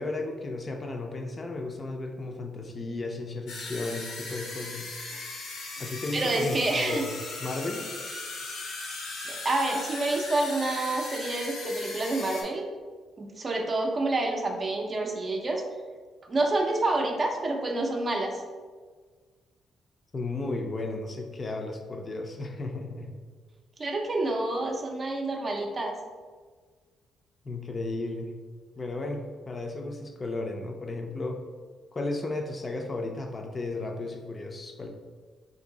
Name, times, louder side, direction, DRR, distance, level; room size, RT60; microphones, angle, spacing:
voice 1, 0.0-4.9 5.8-7.8 20.1-23.2 27.4-28.3 28.8-31.4 31.9-34.9, left 2 dB, 30° left, 3 dB, 0.4 m, -34 dB
sound 1, 3.5-12.4, left 3 dB, 80° left, 0.7 m, -38 dB
voice 2, 6.1-7.0 8.7-8.8 9.3-12.7 13.2-15.6 16.2-18.4 23.8-26.0, right 2 dB, 35° right, 2 dB, 0.5 m, -28 dB
2.7 x 2.6 x 3.9 m, 1.5 s
cardioid pair, 90°, 0 cm